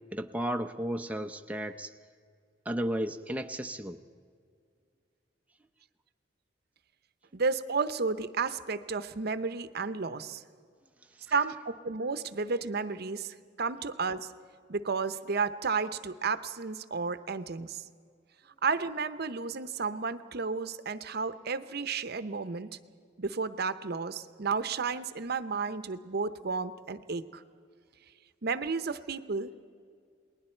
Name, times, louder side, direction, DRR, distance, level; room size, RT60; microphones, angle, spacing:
voice 1, 0.1-1.9 2.7-4.0 11.3-11.4, right 1 dB, 10° right, 5 dB, 0.6 m, -33 dB
voice 2, 7.3-10.4 11.3-14.3 14.7-17.8 18.6-22.8 23.2-27.4 28.4-29.6, right 4 dB, 60° right, 13 dB, 0.8 m, -32 dB
29.0 x 20.5 x 4.5 m, 2.2 s
head